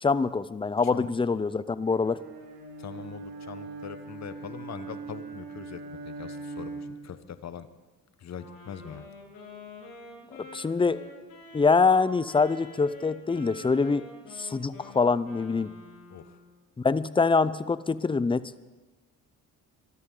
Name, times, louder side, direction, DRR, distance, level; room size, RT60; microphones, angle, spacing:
voice 1, 0.0-2.2 10.5-11.0 11.5-14.1 14.3-15.7 16.8-18.5, left 4 dB, 15° left, 16 dB, 0.5 m, -24 dB
Bowed string instrument, 1.8-7.1, right 3 dB, 80° right, 2.7 m, -41 dB
voice 2, 2.8-7.7 8.2-9.1 16.1-16.4, left 8 dB, 50° left, 13 dB, 1.0 m, -42 dB
Wind instrument woodwind instrument, 8.3-16.6, left 2 dB, 70° left, 6.9 m, -47 dB
23.0 x 13.5 x 3.9 m, 1.2 s
cardioid pair, 85°, 35 cm